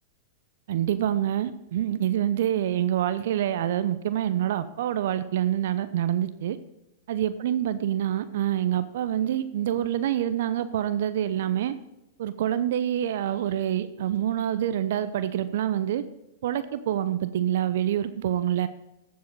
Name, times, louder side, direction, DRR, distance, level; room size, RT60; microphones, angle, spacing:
voice 1, 0.7-6.6 7.1-11.7 12.2-16.0 16.4-18.7, right 11 dB, 65° right, 12 dB, 0.8 m, -26 dB
15.0 x 7.7 x 4.0 m, 0.92 s
hypercardioid pair, 105°, 0 cm